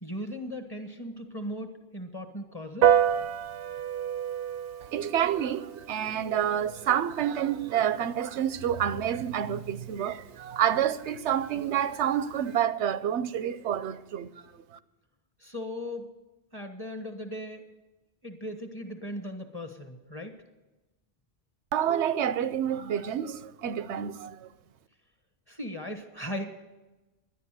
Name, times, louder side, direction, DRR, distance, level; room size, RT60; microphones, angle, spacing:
voice 1, 0.0-3.0 15.4-16.1 16.5-17.6 18.2-20.3 25.5-26.4, left 1 dB, 20° left, 1.3 m, -38 dB
Piano, 2.8-12.6, right 9 dB, 60° right, 0.7 m, -31 dB
voice 2, 4.8-14.8 21.7-24.5, right 9 dB, 80° right, 1.0 m, -28 dB
12.0 x 10.5 x 7.5 m
omnidirectional pair, 1.2 m